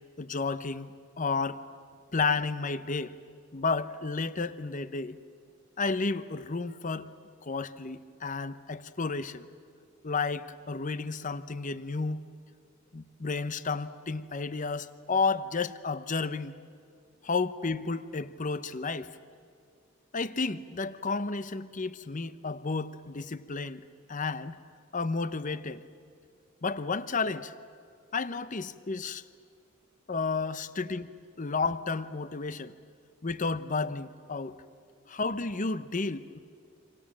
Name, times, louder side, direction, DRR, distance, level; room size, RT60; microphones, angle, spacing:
voice 1, 0.2-1.6 2.1-3.2 3.5-5.2 5.8-7.1 7.4-9.5 10.0-12.3 12.9-16.5 17.2-19.1 20.1-24.5 24.9-25.8 26.6-27.5 28.1-29.2 30.1-31.1 31.4-32.7 33.2-34.6 35.1-36.4, left 4 dB, 40° left, 14 dB, 0.8 m, -32 dB
27.5 x 25.5 x 7.4 m, 2.3 s
head